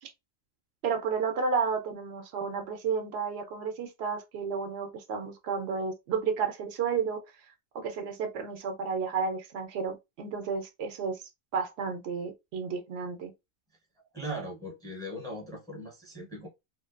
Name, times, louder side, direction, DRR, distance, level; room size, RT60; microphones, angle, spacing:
voice 1, 0.8-7.2 7.7-11.2 11.5-13.3, right 5 dB, 80° right, 0.8 m, -32 dB
voice 2, 14.1-16.5, right 1 dB, 5° left, 0.8 m, -39 dB
2.5 x 2.1 x 2.4 m
omnidirectional pair, 1.1 m